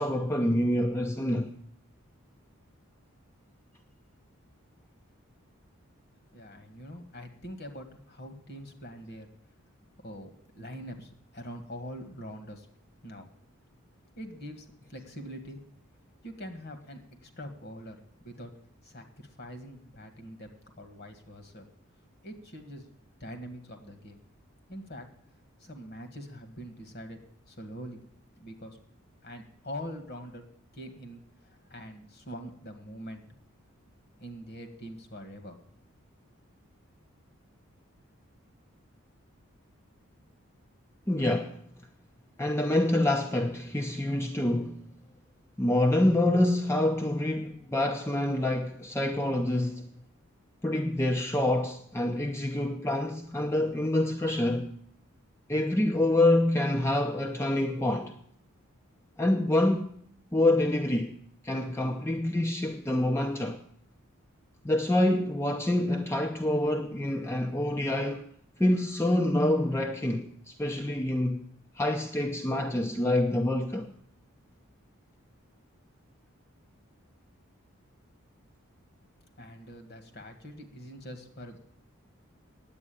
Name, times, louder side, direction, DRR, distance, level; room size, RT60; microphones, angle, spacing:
voice 1, 0.0-1.5 41.1-41.6 42.4-44.8 45.6-49.9 50.6-54.7 55.5-58.1 59.2-59.9 60.3-61.2 61.4-63.6 64.6-68.3 68.6-71.4 71.8-73.9, left 1 dB, 10° left, 0.6 m, -26 dB
voice 2, 6.3-9.3 10.0-12.7 13.0-13.3 14.2-15.6 16.2-18.0 18.2-18.5 18.8-20.5 20.8-21.7 22.2-22.9 23.2-24.2 24.7-25.1 25.6-27.2 27.5-28.0 28.4-28.8 29.2-30.4 30.7-33.2 34.2-35.6 79.4-81.6, equal, 45° left, 1.7 m, -43 dB
9.7 x 8.5 x 8.5 m
head